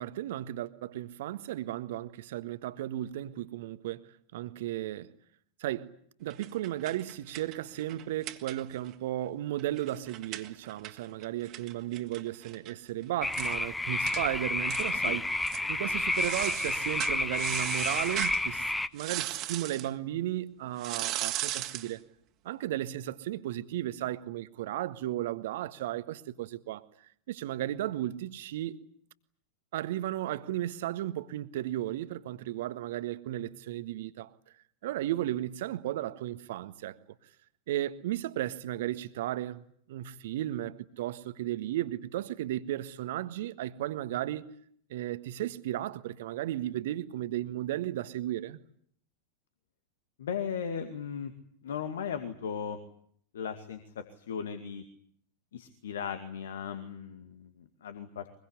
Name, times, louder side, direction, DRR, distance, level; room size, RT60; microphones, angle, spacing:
voice 1, 0.0-5.1 5.6-5.9 6.2-15.2 15.7-22.0 22.4-26.8 27.3-28.7 29.7-34.3 34.8-37.0 37.7-39.6 39.9-44.5 44.9-48.6, right 13 dB, 55° right, 1.6 m, -34 dB
sound 1, 6.3-8.9 9.2-9.3 9.6-12.7 13.0-13.1 13.3-13.6 14.1-14.2 14.7-15.1 15.4-15.7 16.1-18.4 19.0-19.9 20.8-21.9, right 15 dB, 35° right, 2.3 m, -37 dB
sound 2, 13.2-18.9, left 2 dB, 5° left, 1.1 m, -30 dB
voice 2, 50.2-51.3 51.6-52.8 53.3-54.8 55.5-58.2, left 7 dB, 60° left, 2.2 m, -37 dB
24.0 x 22.5 x 9.7 m
figure-of-eight pair, 90°, 0 cm